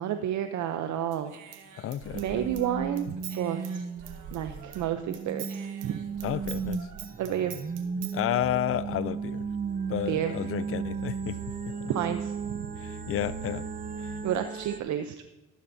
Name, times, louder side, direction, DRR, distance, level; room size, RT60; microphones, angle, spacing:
voice 1, 0.0-1.3 2.1-3.8 4.3-6.0 7.2-7.6 10.1-10.3 11.9-12.7 14.2-15.1, right 10 dB, 70° right, 0.7 m, -30 dB
Human voice / Scissors, 1.1-4.9 5.1-8.2, right 8 dB, 90° right, 1.2 m, -44 dB
voice 2, 1.8-2.5 6.2-6.9 8.1-9.5 9.9-11.4 11.7-11.9 12.8-13.7 14.0-14.2, left 12 dB, 45° left, 0.4 m, -31 dB
sound 1, 2.2-14.8, right 5 dB, 30° right, 0.6 m, -35 dB
sound 2, 8.4-14.3, right 6 dB, 50° right, 3.3 m, -44 dB
13.5 x 11.5 x 2.7 m
cardioid pair, 90°, 30 cm